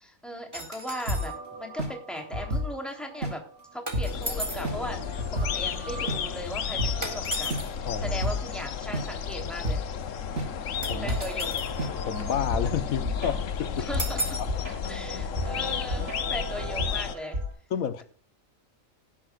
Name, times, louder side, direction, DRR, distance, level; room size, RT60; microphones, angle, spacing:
voice 1, 0.0-1.3 1.6-3.4 3.7-5.0 5.3-7.5 8.0-9.8 10.7-11.6 13.8-14.4 14.9-17.4, equal, ahead, 2 dB, 3.3 m, -38 dB
sound 1, 0.5-1.3 3.9-4.7 7.0-7.7 10.8-11.8 14.0-14.5, right 1 dB, 20° right, 3.2 m, -35 dB
sound 2, 1.1-8.4 8.9-9.0 9.6-9.8 10.3-17.5, equal, 60° right, 3.9 m, -33 dB
sound 3, 4.0-17.2, left 7 dB, 70° left, 1.2 m, -33 dB
voice 2, 7.8-8.2 10.9-11.2 12.0-13.9 17.7-18.0, left 7 dB, 90° left, 11 dB, 1.4 m, -30 dB
18.0 x 10.5 x 2.4 m, 0.37 s
omnidirectional pair, 1.4 m